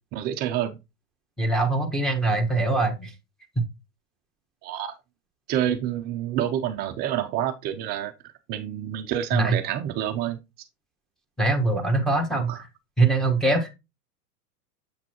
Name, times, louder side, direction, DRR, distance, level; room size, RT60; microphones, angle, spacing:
voice 1, 0.1-0.8 4.6-4.9 5.5-8.1 8.5-10.4 12.3-12.6, right 11 dB, 20° right, 7 dB, 0.3 m, -28 dB
voice 2, 1.4-3.1 9.3-9.6 11.4-12.7 13.0-13.7, right 2 dB, ahead, 1 dB, 1.3 m, -23 dB
7.7 x 5.9 x 2.9 m, 0.24 s
hypercardioid pair, 115°, 49 cm